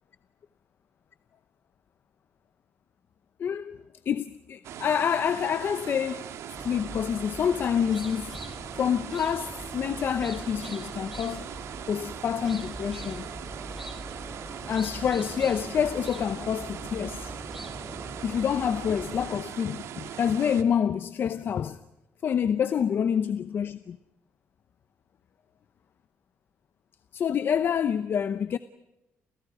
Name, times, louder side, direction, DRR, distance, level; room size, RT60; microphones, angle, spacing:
voice 1, 3.4-3.8 4.1-6.3 6.6-8.4 8.8-11.5 11.9-13.3 14.7-17.3 18.2-21.8 22.2-24.0 27.1-28.6, left 8 dB, 50° left, 0.8 m, -27 dB
sound 1, 4.6-20.6, right 9 dB, 85° right, 1.9 m, -40 dB
sound 2, 6.5-19.3, right 1 dB, 5° right, 3.8 m, -42 dB
29.5 x 28.5 x 4.9 m
cardioid pair, 150°, 5 cm